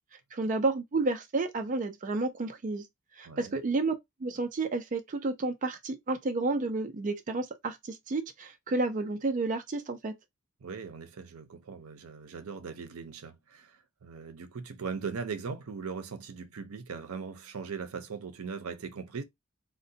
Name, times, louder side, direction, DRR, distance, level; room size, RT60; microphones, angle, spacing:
voice 1, 0.3-2.9 3.1-3.9 4.2-10.1, right 3 dB, 35° right, 0.4 m, -31 dB
voice 2, 3.3-3.6 10.6-19.2, right 5 dB, 85° right, 0.6 m, -39 dB
3.8 x 2.1 x 2.6 m
head